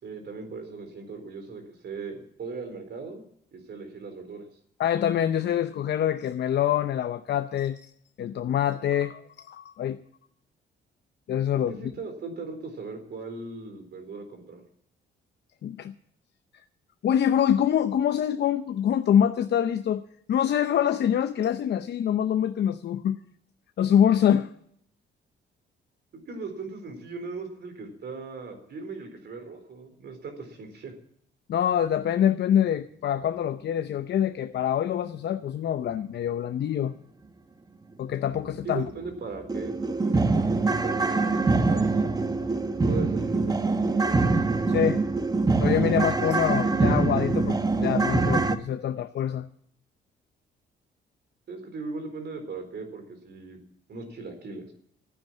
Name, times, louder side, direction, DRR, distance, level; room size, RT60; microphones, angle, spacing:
voice 1, 0.0-3.2 3.5-4.4 11.5-14.6 26.3-30.9 38.6-42.1 42.9-44.2 51.5-53.6 53.9-54.7, right 4 dB, 60° right, 4.1 m, -38 dB
voice 2, 4.8-7.9 8.2-10.0 11.3-11.7 15.6-15.9 17.0-20.0 20.3-23.2 23.8-24.5 31.5-36.9 38.0-38.9 44.7-45.0 45.6-49.5, left 9 dB, 60° left, 0.7 m, -25 dB
sound 1, 38.6-38.7 39.1-39.2 39.5-48.6, right 3 dB, 20° right, 1.1 m, -24 dB
12.0 x 9.4 x 9.0 m
cardioid pair, 90°, 20 cm